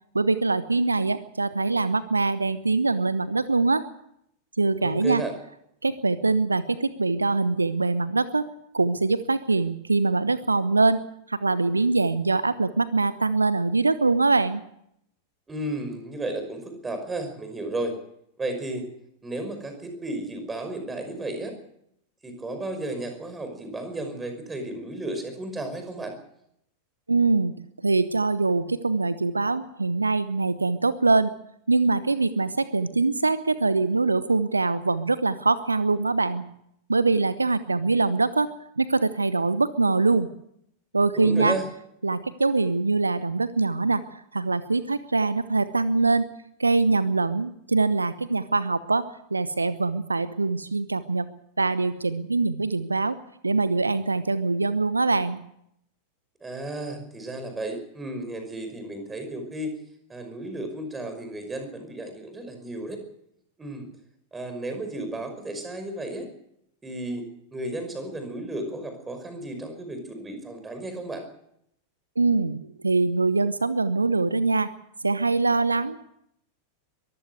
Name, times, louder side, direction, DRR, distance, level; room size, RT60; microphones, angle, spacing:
voice 1, 0.1-3.8 4.6-5.2 5.8-8.4 8.7-11.0 11.3-14.6 27.1-27.5 27.8-31.3 31.7-36.5 36.9-38.5 38.8-40.3 40.9-41.6 42.0-46.2 46.6-49.0 49.3-51.3 51.6-53.2 53.4-55.4 72.2-74.7 75.0-76.1, right 3 dB, 80° right, 15 dB, 0.9 m, -23 dB
voice 2, 4.8-5.3 15.5-18.0 18.4-18.9 19.2-21.5 22.2-26.1 41.1-41.6 56.4-59.8 60.1-63.0 63.6-63.9 64.3-66.3 66.8-67.2 67.5-71.2, right 2 dB, 15° right, 6 dB, 5.6 m, -33 dB
23.0 x 15.0 x 8.2 m, 0.75 s
figure-of-eight pair, 90°, 0 cm